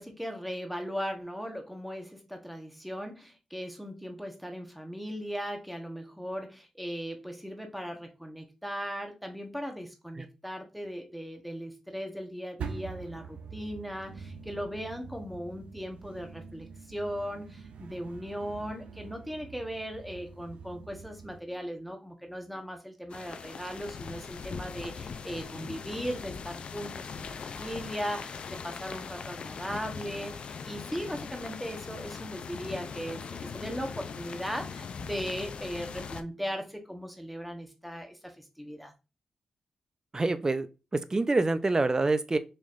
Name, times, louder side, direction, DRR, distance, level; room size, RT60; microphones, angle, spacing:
voice 1, 0.0-38.9, equal, ahead, 1.0 m, -38 dB
sound 1, 12.6-21.4, right 5 dB, 80° right, 0.4 m, -45 dB
sound 2, 23.1-36.2, left 6 dB, 65° left, 0.4 m, -40 dB
voice 2, 40.1-40.7 40.9-42.4, right 3 dB, 30° right, 0.5 m, -26 dB
4.3 x 3.0 x 2.4 m
supercardioid pair, 40°, 2 cm